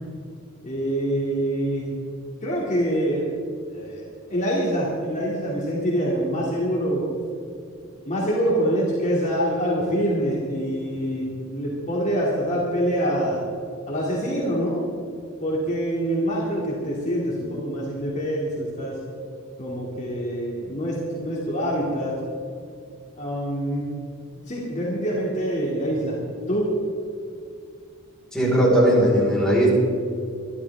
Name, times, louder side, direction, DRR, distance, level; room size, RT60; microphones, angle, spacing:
voice 1, 0.6-1.9 2.4-3.3 3.7-7.1 8.1-13.4 13.9-15.0 15.4-19.0 19.6-22.2 23.2-23.9 24.5-26.2 26.5-26.7, equal, 35° left, -5 dB, 2.7 m, -25 dB
voice 2, 28.3-29.7, equal, 5° left, -6 dB, 4.7 m, -18 dB
24.5 x 12.0 x 3.6 m, 2.4 s
head